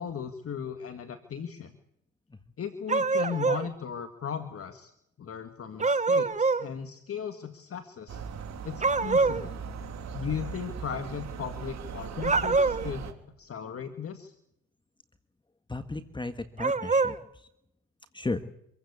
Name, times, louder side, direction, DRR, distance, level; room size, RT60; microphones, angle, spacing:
voice 1, 0.0-1.7 2.6-4.9 5.2-8.2 8.6-9.6 10.1-13.1 13.4-14.3, left 7 dB, 50° left, 8 dB, 2.0 m, -37 dB
sound 1, 2.9-3.7 5.8-6.7 8.8-9.4 12.2-12.9 16.6-17.2, right 4 dB, 25° right, 1.3 m, -25 dB
sound 2, 8.1-13.1, right 6 dB, 65° right, 3.3 m, -39 dB
voice 2, 15.7-17.5 18.1-18.4, left 2 dB, 15° left, 10 dB, 1.5 m, -35 dB
26.0 x 15.5 x 8.5 m, 0.78 s
cardioid pair, 90°, 30 cm